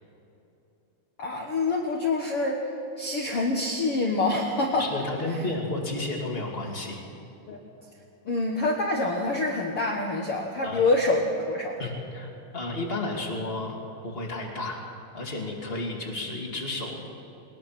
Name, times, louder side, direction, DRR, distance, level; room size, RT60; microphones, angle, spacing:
voice 1, 1.2-2.6 3.0-4.9 7.5-7.6 8.2-11.8, left 2 dB, 55° left, 0 dB, 1.7 m, -26 dB
voice 2, 4.8-7.0 10.6-10.8 11.8-13.8 14.0-14.8 15.1-17.0, left 2 dB, 20° left, 0 dB, 2.2 m, -32 dB
21.5 x 21.0 x 6.0 m, 2.8 s
omnidirectional pair, 4.5 m